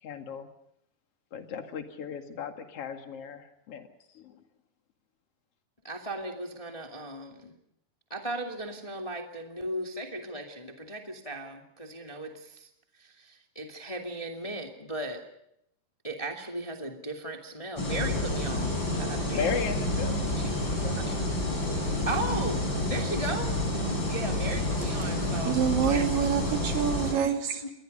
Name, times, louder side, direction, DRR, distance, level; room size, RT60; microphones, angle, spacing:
voice 1, 0.0-0.5 1.3-3.9 4.1-4.4 19.3-20.2, left 6 dB, 45° left, 2.8 m, -35 dB
voice 2, 5.8-7.5 8.1-12.7 13.0-15.2 16.0-19.6 20.4-20.5 20.8-21.2 22.1-25.6 25.9-26.1 27.6-27.7, right 1 dB, 10° left, 1.9 m, -37 dB
sound 1, 17.8-27.1, left 1 dB, 30° left, 6.9 m, -29 dB
voice 3, 25.0-27.6, right 9 dB, 75° right, 4.0 m, -28 dB
28.5 x 22.5 x 5.5 m
omnidirectional pair, 4.1 m